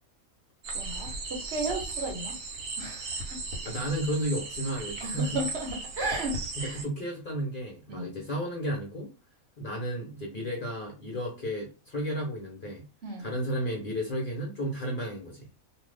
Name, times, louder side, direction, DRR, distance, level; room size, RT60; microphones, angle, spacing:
sound 1, 0.6-6.8, right 3 dB, 70° right, 1.2 m, -37 dB
voice 1, 0.7-2.3 2.8-3.2 5.0-6.9 7.9-8.1 13.0-13.3, right 2 dB, 50° right, 1.1 m, -34 dB
voice 2, 3.6-5.4 6.6-9.1 9.6-12.8 13.2-15.5, equal, 45° left, 0.8 m, -33 dB
2.6 x 2.4 x 3.3 m
omnidirectional pair, 1.5 m